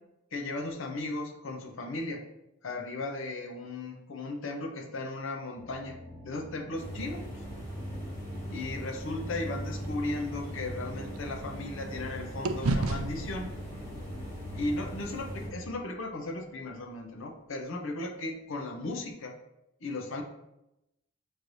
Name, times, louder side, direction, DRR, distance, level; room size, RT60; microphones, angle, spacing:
voice 1, 0.3-2.2 2.6-6.0 6.2-7.2 8.5-13.5 14.5-19.3 19.8-20.2, left 2 dB, 65° left, 3 dB, 0.6 m, -36 dB
sound 1, 5.6-15.7, left 1 dB, 10° right, 1.4 m, -47 dB
sound 2, 6.8-15.5, equal, 15° left, 1.7 m, -40 dB
sound 3, 9.7-12.1 12.4-16.7, right 2 dB, 85° right, 0.4 m, -36 dB
6.2 x 3.1 x 2.6 m, 0.88 s
head